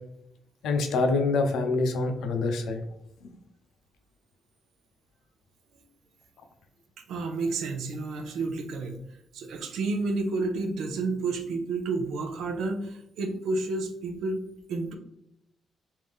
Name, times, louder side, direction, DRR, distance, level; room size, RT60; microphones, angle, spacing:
voice 1, 0.6-2.8 3.2-3.3, left 3 dB, 80° left, 5 dB, 0.6 m, -26 dB
voice 2, 7.1-9.0 9.3-14.4 14.7-14.9, right 3 dB, 75° right, 5 dB, 0.5 m, -30 dB
3.4 x 2.7 x 3.5 m, 0.80 s
cardioid pair, 160°, 0 cm